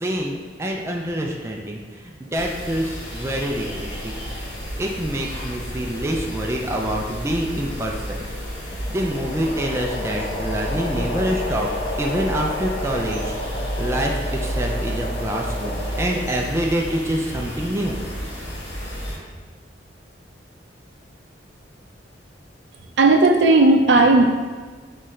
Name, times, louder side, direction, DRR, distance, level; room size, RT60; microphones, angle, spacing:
voice 1, 0.0-1.8 2.2-4.1 4.8-7.9 8.7-11.7 12.0-18.0, right 1 dB, 15° right, 0 dB, 0.4 m, -26 dB
sound 1, 2.3-19.2, equal, 65° left, 1.4 m, -31 dB
sound 2, 8.3-16.5, left 2 dB, 45° left, 0.7 m, -32 dB
voice 2, 23.0-24.2, right 2 dB, 75° right, 4 dB, 0.5 m, -14 dB
3.9 x 3.2 x 4.2 m, 1.4 s
head